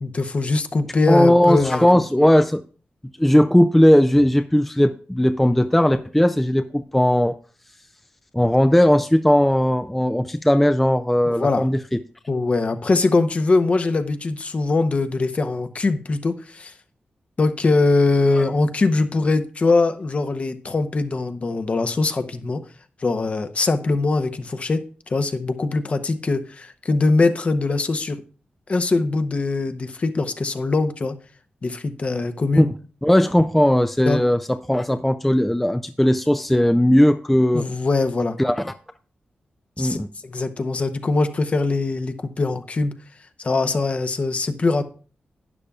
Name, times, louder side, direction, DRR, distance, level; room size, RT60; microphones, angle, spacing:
voice 1, 0.0-1.9 11.3-11.7 12.3-16.7 17.4-22.6 23.0-24.8 25.1-28.2 28.7-31.1 31.6-32.7 34.0-34.2 37.5-38.4 39.8-40.0 40.2-42.9 43.4-44.8, left 3 dB, 40° left, 9 dB, 0.7 m, -22 dB
voice 2, 1.1-2.6 3.2-7.4 8.3-12.0 18.4-18.5 32.6-32.7 33.0-37.6 38.4-38.7 39.8-40.1, left 1 dB, 5° left, 9 dB, 0.3 m, -17 dB
12.0 x 9.9 x 2.3 m, 0.39 s
wide cardioid pair, 145°, 3 cm